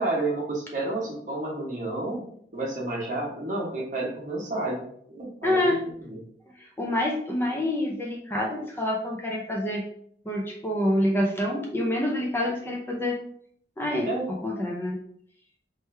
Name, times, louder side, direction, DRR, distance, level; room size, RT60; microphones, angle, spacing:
voice 1, 0.0-2.2 2.5-5.7 6.0-6.2 14.0-14.3, right 2 dB, 45° right, -3 dB, 1.2 m, -30 dB
voice 2, 5.4-5.8 6.6-9.8 10.3-13.2 13.8-14.1 14.4-15.0, left 1 dB, 15° left, -1 dB, 0.5 m, -27 dB
3.4 x 3.0 x 3.2 m, 0.65 s
head